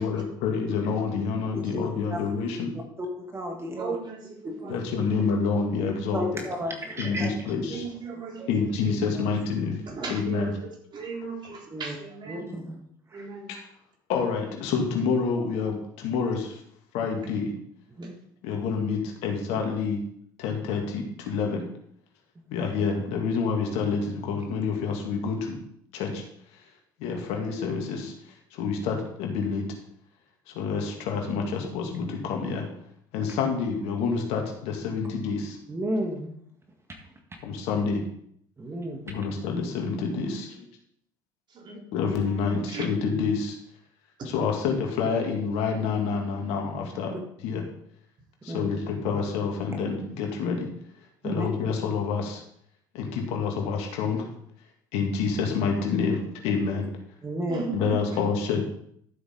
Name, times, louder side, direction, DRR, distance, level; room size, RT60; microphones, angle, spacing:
voice 1, 0.0-2.7 4.7-6.4 7.0-7.8 8.5-9.8 10.1-10.5 11.2-11.5 13.5-13.7 14.1-16.6 16.9-17.5 18.4-20.0 20.4-21.6 22.5-25.6 25.9-26.2 27.0-28.1 28.5-29.7 30.5-32.7 33.1-35.6 37.4-38.0 39.1-40.6 41.7-43.6 44.3-47.1 47.4-47.6 48.4-50.7 51.2-52.4 52.9-54.3 54.9-56.9 57.7-58.6, left 5 dB, 65° left, 2 dB, 2.4 m, -28 dB
voice 2, 1.6-2.2 3.8-4.7 6.1-6.2 7.7-8.5 9.1-9.2 10.0-12.5 13.1-13.5 41.5-42.2 42.7-42.8 57.5-58.0, right 4 dB, 45° right, -1 dB, 4.1 m, -37 dB
voice 3, 2.7-4.0 4.4-4.8 6.1-7.3 8.4-8.5 11.7-12.0 12.3-12.8 13.1-13.3 18.0-18.1 35.7-36.4 38.6-39.0 48.5-48.7 51.2-51.5 57.2-57.6, equal, 25° right, 2 dB, 1.8 m, -32 dB
13.0 x 8.0 x 3.9 m, 0.68 s
hypercardioid pair, 65°, 11 cm